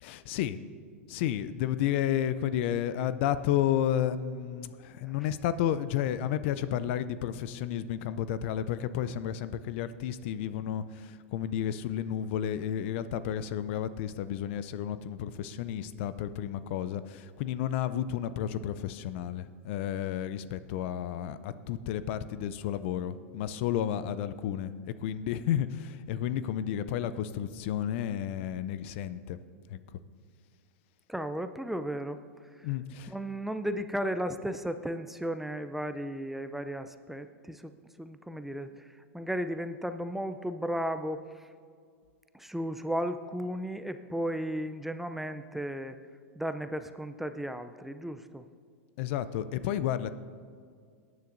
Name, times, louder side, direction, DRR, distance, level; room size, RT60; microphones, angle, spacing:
voice 1, 0.0-0.6 1.1-29.4 29.7-30.0 32.6-33.2 49.0-50.1, left 10 dB, 60° left, 14 dB, 0.5 m, -32 dB
voice 2, 31.1-32.2 32.6-32.7 33.1-37.7 38.0-38.9 39.1-41.5 42.3-46.0 46.4-48.4, equal, 5° right, 9 dB, 0.5 m, -34 dB
18.5 x 9.5 x 2.6 m, 2.1 s
hypercardioid pair, 100°, 7 cm